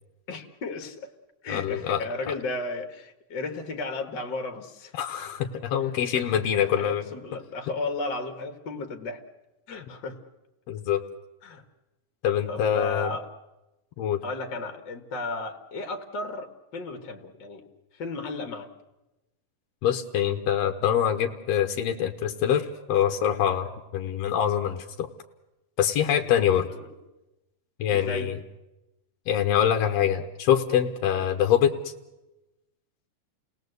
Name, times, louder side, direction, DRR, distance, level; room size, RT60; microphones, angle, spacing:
voice 1, 0.3-1.1 1.4-4.9 6.1-9.2 9.7-10.2 11.4-11.6 12.5-13.3 14.2-17.6 17.9-18.7 26.7-26.9 27.9-28.3, left 3 dB, 45° left, 5 dB, 1.6 m, -34 dB
voice 2, 1.5-2.0 2.3-2.4 4.9-7.0 10.7-11.0 12.2-13.1 14.0-14.2 19.8-25.1 25.8-26.7 27.8-28.4 29.3-31.9, left 9 dB, 70° left, 5 dB, 1.7 m, -24 dB
29.5 x 19.0 x 8.0 m, 1.0 s
omnidirectional pair, 3.9 m